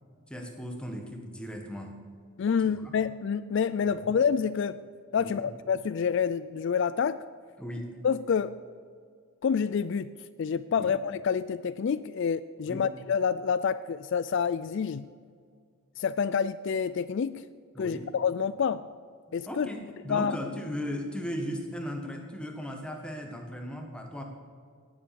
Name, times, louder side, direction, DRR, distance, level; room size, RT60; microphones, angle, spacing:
voice 1, 0.3-1.9 2.6-2.8 4.0-4.1 5.2-5.5 7.6-7.9 10.8-10.9 12.7-12.9 17.7-18.1 19.5-24.2, equal, 5° left, 3 dB, 1.5 m, -37 dB
voice 2, 2.4-4.8 5.1-7.2 8.0-8.6 9.4-10.1 10.4-15.1 16.0-17.4 17.8-18.9 19.3-19.7 20.1-20.4, left 6 dB, 55° left, 14 dB, 0.3 m, -28 dB
18.0 x 7.7 x 7.0 m, 2.1 s
head